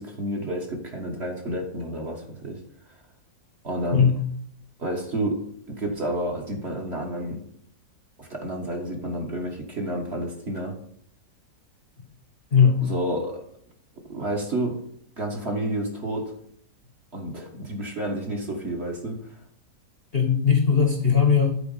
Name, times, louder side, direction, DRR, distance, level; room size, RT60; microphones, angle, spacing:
voice 1, 0.0-2.6 3.6-4.0 4.8-5.4 5.8-7.4 8.2-10.7 12.8-13.4 14.1-14.8 15.2-16.3 17.1-19.3, right 1 dB, 40° right, 1 dB, 1.5 m, -30 dB
voice 2, 12.5-12.8 20.1-21.6, left 6 dB, 40° left, 3 dB, 1.1 m, -19 dB
9.0 x 4.6 x 5.5 m, 0.64 s
omnidirectional pair, 1.9 m